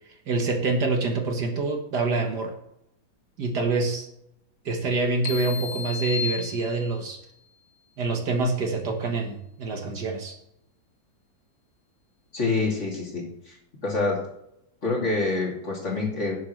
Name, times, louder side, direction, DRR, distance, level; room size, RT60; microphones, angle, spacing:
voice 1, 0.3-2.5 3.4-4.1 4.7-7.2 8.0-10.4, right 3 dB, 60° right, 3 dB, 2.0 m, -26 dB
sound 1, 5.2-7.2, left 6 dB, 65° left, 0.8 m, -33 dB
voice 2, 12.3-13.6 13.8-14.2 14.8-16.4, left 3 dB, 40° left, -2 dB, 3.0 m, -26 dB
17.5 x 7.5 x 3.3 m, 0.80 s
omnidirectional pair, 2.1 m